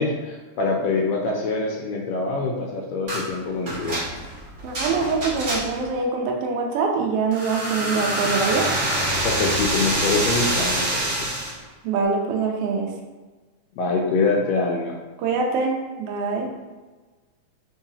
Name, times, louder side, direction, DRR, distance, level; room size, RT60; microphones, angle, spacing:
voice 1, 0.0-4.0 9.2-11.4 13.8-15.0, left 3 dB, 80° left, 0 dB, 1.5 m, -25 dB
sound 1, 3.1-3.3 3.7-5.9 7.3-11.6, right 1 dB, 70° right, 0.7 m, -25 dB
voice 2, 4.6-8.7 11.8-12.9 15.2-16.5, right 4 dB, 85° right, 0 dB, 1.3 m, -24 dB
4.7 x 3.7 x 2.8 m, 1.3 s
omnidirectional pair, 3.5 m